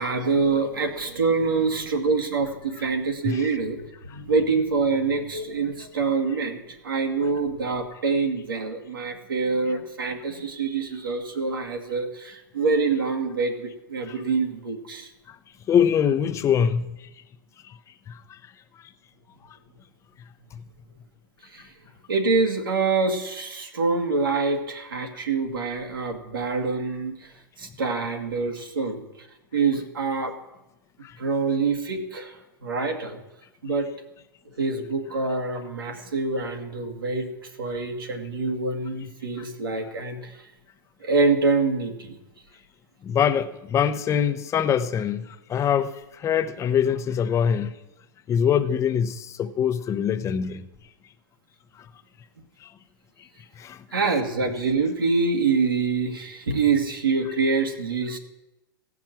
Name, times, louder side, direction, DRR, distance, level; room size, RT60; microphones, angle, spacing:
voice 1, 0.0-3.8 4.1-15.1 21.5-21.7 22.1-27.3 27.6-29.0 29.5-30.3 31.2-33.2 33.6-33.9 34.6-37.3 37.6-40.4 41.0-42.1 53.9-58.2, right 4 dB, 90° right, 3 dB, 1.8 m, -25 dB
voice 2, 15.7-16.9 18.1-18.4 31.0-31.2 43.0-47.7 48.3-50.7 53.6-53.8, left 8 dB, 25° left, 11 dB, 0.8 m, -23 dB
15.5 x 6.0 x 7.5 m, 0.96 s
hypercardioid pair, 110°, 11 cm